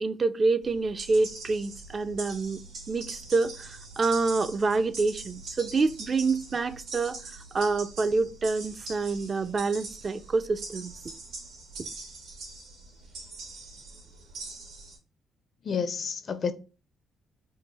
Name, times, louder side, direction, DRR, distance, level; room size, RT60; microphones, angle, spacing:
voice 1, 0.0-2.6 2.9-7.2 7.5-11.0, right 3 dB, 35° right, 0.3 m, -27 dB
sound 1, 0.6-15.0, right 3 dB, 90° right, 1.5 m, -43 dB
voice 2, 15.6-16.5, left 6 dB, 50° left, 0.5 m, -30 dB
3.7 x 2.4 x 4.0 m
cardioid pair, 90°, 0 cm